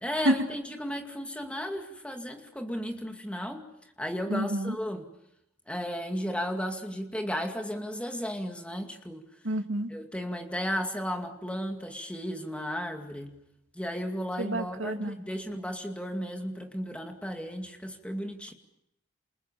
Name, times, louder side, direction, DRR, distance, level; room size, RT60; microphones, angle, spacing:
voice 1, 0.0-3.7 4.0-5.1 5.7-9.2 9.9-13.4 13.7-18.5, equal, 5° left, 4 dB, 2.4 m, -34 dB
voice 2, 4.3-4.7 9.4-9.9 14.4-15.2, right 1 dB, 80° right, 5 dB, 2.5 m, -28 dB
28.5 x 28.5 x 7.0 m, 0.81 s
head